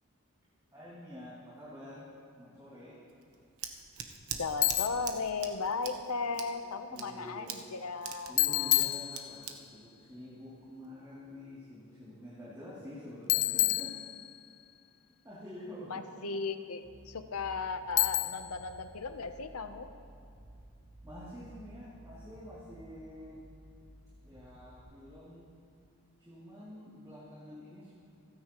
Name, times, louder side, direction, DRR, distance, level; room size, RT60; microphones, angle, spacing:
voice 1, 0.7-2.1 2.4-3.0 5.8-7.5 8.3-13.9 15.2-16.0 21.0-23.4 24.2-25.5 26.2-27.9, left 1 dB, 15° right, -10 dB, 2.8 m, -48 dB
Scissors, 3.1-10.8, right 8 dB, 75° right, 1.0 m, -44 dB
voice 2, 4.4-8.9 15.9-19.9, left 4 dB, 80° left, 8 dB, 0.8 m, -36 dB
Bicycle, 4.6-5.1 8.4-9.6 13.3-14.5 18.0-18.6, left 17 dB, 55° left, 0.3 m, -29 dB
sound 1, 16.8-24.8, right 1 dB, 50° right, 1.7 m, -54 dB
28.5 x 9.6 x 3.0 m, 2.4 s
head